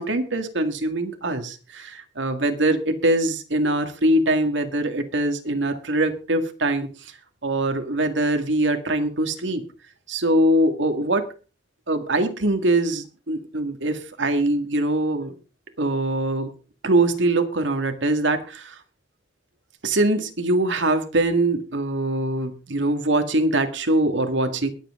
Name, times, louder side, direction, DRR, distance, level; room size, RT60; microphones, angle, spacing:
voice 1, 0.0-6.9 7.4-9.6 10.1-11.3 11.9-15.3 15.8-16.5 16.8-18.8 19.8-24.7, right 1 dB, 85° right, 7 dB, 1.9 m, -23 dB
22.0 x 7.8 x 3.7 m, 0.35 s
head